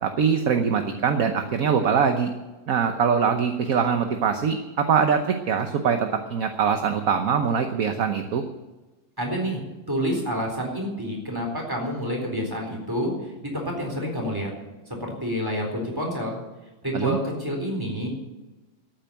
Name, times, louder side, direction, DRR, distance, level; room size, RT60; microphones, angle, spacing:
voice 1, 0.0-2.3 2.7-8.4 16.9-17.2, right 6 dB, 55° right, 7 dB, 1.2 m, -23 dB
voice 2, 9.2-9.6 9.9-14.5 14.9-16.4 16.8-18.1, equal, 10° right, 0 dB, 4.0 m, -28 dB
13.5 x 9.1 x 8.9 m, 1.1 s
omnidirectional pair, 2.0 m